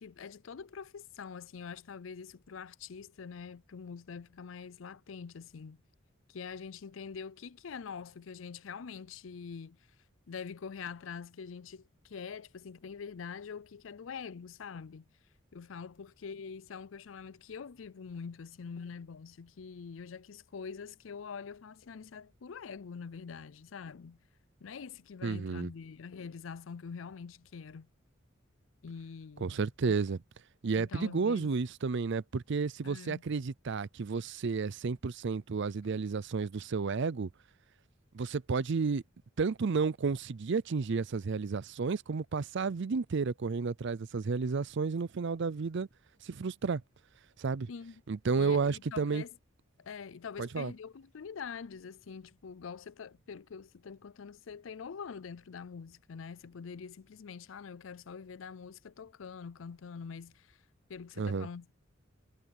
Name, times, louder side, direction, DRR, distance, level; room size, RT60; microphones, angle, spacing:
voice 1, 0.0-5.8 6.3-9.8 10.3-15.0 15.5-24.2 24.6-27.9 28.8-30.0 30.7-31.5 32.8-33.2 47.7-48.0 48.4-49.4 49.8-60.6 60.9-61.7, left 6 dB, 75° left, 0.5 m, -45 dB
voice 2, 25.2-25.7 29.4-30.2 30.6-37.3 38.1-39.0 39.4-45.9 46.2-46.8 47.4-47.7 48.1-49.2 50.4-50.7 61.2-61.5, right 4 dB, 65° right, 0.5 m, -32 dB
head